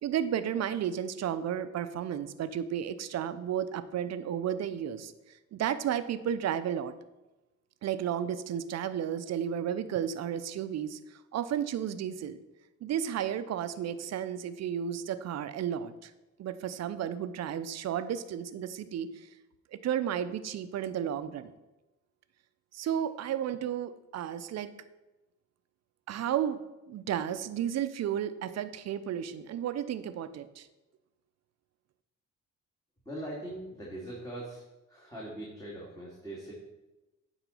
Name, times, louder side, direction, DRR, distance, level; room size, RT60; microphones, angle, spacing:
voice 1, 0.0-6.9 7.8-12.4 12.8-16.1 16.4-19.3 19.7-21.5 22.7-24.7 26.1-26.6 26.9-30.7, right 9 dB, 60° right, 12 dB, 0.6 m, -33 dB
voice 2, 33.1-34.6 34.9-36.5, right 1 dB, 10° left, -5 dB, 2.1 m, -41 dB
9.0 x 4.0 x 5.5 m, 1.0 s
cardioid pair, 90°, 30 cm